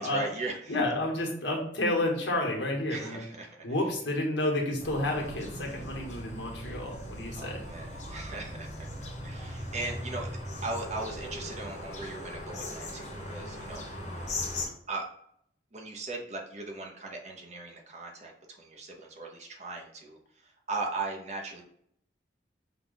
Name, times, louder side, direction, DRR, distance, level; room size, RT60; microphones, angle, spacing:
voice 1, 0.0-0.8 2.9-3.6 7.4-8.9 9.2-10.3 10.6-13.8 14.9-15.1 15.7-18.3 18.6-21.6, right 3 dB, 35° right, 0 dB, 0.8 m, -38 dB
voice 2, 0.7-3.2 3.6-7.6, left 1 dB, 80° left, -1 dB, 1.2 m, -30 dB
sound 1, 4.8-14.7, left 1 dB, 40° left, 1.0 m, -39 dB
5.8 x 2.3 x 3.9 m, 0.69 s
head